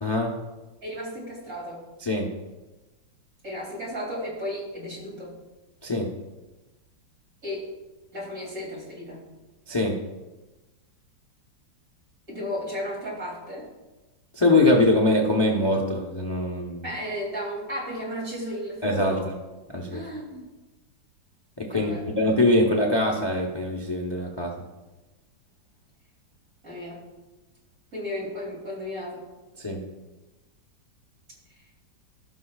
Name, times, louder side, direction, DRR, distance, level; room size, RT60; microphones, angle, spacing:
voice 1, 0.0-0.3 2.0-2.3 5.8-6.1 9.7-10.0 14.3-16.9 18.8-19.2 19.7-20.0 21.6-24.5 29.6-29.8, left 2 dB, 25° left, 0 dB, 0.5 m, -23 dB
voice 2, 0.8-1.8 3.4-5.3 7.4-7.7 8.1-9.3 12.3-13.7 16.8-19.3 19.9-20.4 21.7-22.0 26.6-27.0 27.9-29.3, equal, 45° right, -5 dB, 3.7 m, -34 dB
16.5 x 6.0 x 2.4 m, 1.1 s
omnidirectional pair, 2.0 m